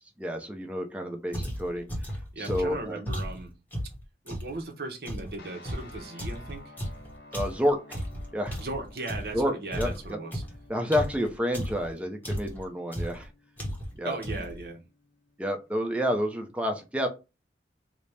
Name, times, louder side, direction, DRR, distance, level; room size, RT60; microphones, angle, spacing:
voice 1, 0.2-1.8 2.4-3.0 7.3-8.0 8.3-8.6 9.3-10.2 10.7-13.3 14.0-14.2 15.4-17.1, equal, 5° right, 3 dB, 0.5 m, -29 dB
sound 1, 1.3-4.5 5.0-9.4 9.7-11.9 12.2-12.6 12.9-13.2 13.6-14.0 14.2-14.6, equal, 10° left, 0.9 m, -35 dB
voice 2, 2.3-3.5 4.2-6.7 8.6-10.4 14.0-14.8, right 2 dB, 60° right, 3 dB, 0.7 m, -37 dB
sound 2, 5.4-15.7, left 2 dB, 70° left, 0.7 m, -54 dB
4.0 x 2.0 x 3.3 m, 0.28 s
head